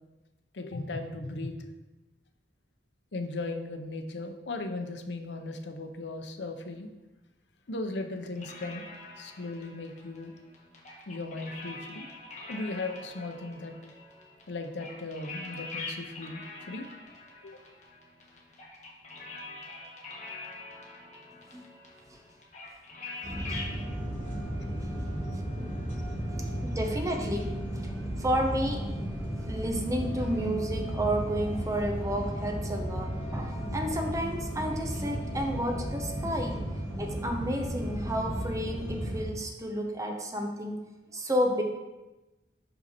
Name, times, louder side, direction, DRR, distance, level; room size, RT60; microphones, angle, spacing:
voice 1, 0.5-1.6 3.1-6.9 7.7-8.9 9.2-10.3 11.1-12.1 12.5-13.7 14.5-16.9 17.4-17.6 23.2-23.3 25.3-25.4, left 2 dB, 80° left, 6 dB, 0.7 m, -37 dB
sound 1, 8.4-23.8, left 3 dB, 45° left, 1.4 m, -44 dB
sound 2, 23.2-39.2, equal, 15° left, 2.0 m, -34 dB
voice 2, 26.6-27.9 28.2-28.8 29.5-36.6 37.0-40.8 41.1-41.6, equal, 20° right, 2 dB, 0.8 m, -31 dB
5.6 x 5.3 x 4.3 m, 1.1 s
head